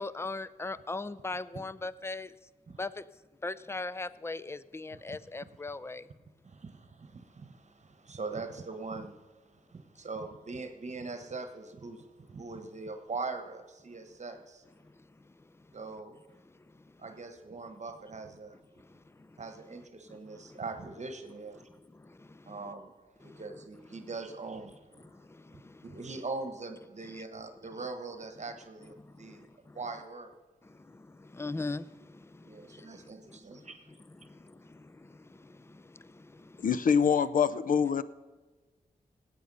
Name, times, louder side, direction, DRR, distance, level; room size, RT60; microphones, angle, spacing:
voice 1, 0.0-2.4 2.8-3.1 3.4-6.1 14.8-15.8 16.5-17.0 18.8-19.4 20.1-20.6 21.6-22.7 23.2-23.4 25.0-26.0 27.0-27.2 29.0-29.8 30.6-36.7, left 3 dB, 15° left, 17 dB, 0.4 m, -42 dB
voice 2, 6.4-14.6 15.7-16.2 17.0-18.6 19.4-21.7 22.5-22.9 23.2-24.9 25.5-29.4 29.7-30.3 32.4-33.9, right 3 dB, 50° right, 7 dB, 1.3 m, -42 dB
voice 3, 36.6-38.0, left 6 dB, 65° left, 16 dB, 0.6 m, -25 dB
18.0 x 8.3 x 5.5 m, 1.3 s
wide cardioid pair, 75°, 15 cm